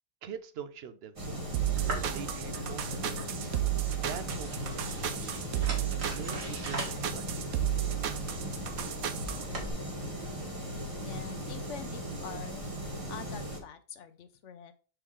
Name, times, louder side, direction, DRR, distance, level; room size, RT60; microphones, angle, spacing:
voice 1, 0.2-1.6 2.1-3.2 4.0-5.7 6.2-7.5, right 7 dB, 55° right, 12 dB, 0.8 m, -45 dB
sound 1, 1.2-13.6, equal, 25° right, 1.5 m, -38 dB
sound 2, 1.5-9.4, right 13 dB, 90° right, 1.1 m, -33 dB
sound 3, 1.8-9.7, right 2 dB, 70° right, 2.2 m, -42 dB
voice 2, 11.0-12.7 13.1-14.7, left 8 dB, 65° left, 11 dB, 1.0 m, -45 dB
6.6 x 4.5 x 3.7 m, 0.37 s
omnidirectional pair, 1.4 m